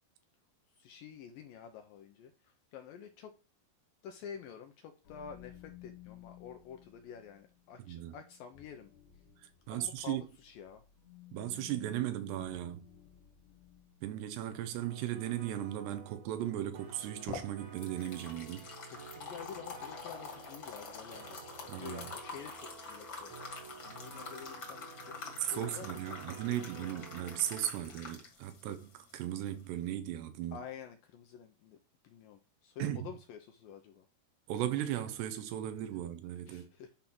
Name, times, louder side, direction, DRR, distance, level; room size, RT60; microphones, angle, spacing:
voice 1, 0.8-3.3 4.0-8.9 9.7-10.8 18.9-21.4 21.7-27.1 30.5-31.8 32.0-34.1 36.5-36.9, left 8 dB, 75° left, 2.1 m, -49 dB
sound 1, 5.0-14.2, left 12 dB, 55° left, 2.2 m, -56 dB
voice 2, 9.7-10.2 11.3-12.9 14.0-18.7 21.7-22.1 25.5-30.6 32.8-33.1 34.5-36.7, right 12 dB, 80° right, 3.0 m, -37 dB
sound 2, 14.8-27.7, right 5 dB, 55° right, 2.4 m, -52 dB
sound 3, 16.9-29.9, left 4 dB, 40° left, 2.0 m, -46 dB
10.0 x 3.8 x 6.0 m
omnidirectional pair, 4.8 m